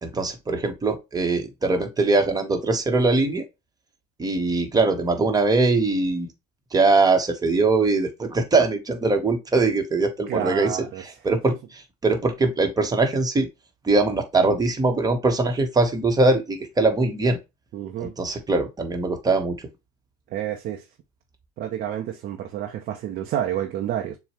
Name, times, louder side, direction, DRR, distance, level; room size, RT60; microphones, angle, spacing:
voice 1, 0.0-3.4 4.2-6.3 6.7-13.5 13.8-17.4 18.0-19.6, right 3 dB, 20° right, 1.2 m, -22 dB
voice 2, 10.3-11.0 17.7-18.1 20.3-20.8 21.6-24.2, right 11 dB, 50° right, 0.7 m, -29 dB
6.8 x 2.3 x 3.0 m
hypercardioid pair, 75°, 19 cm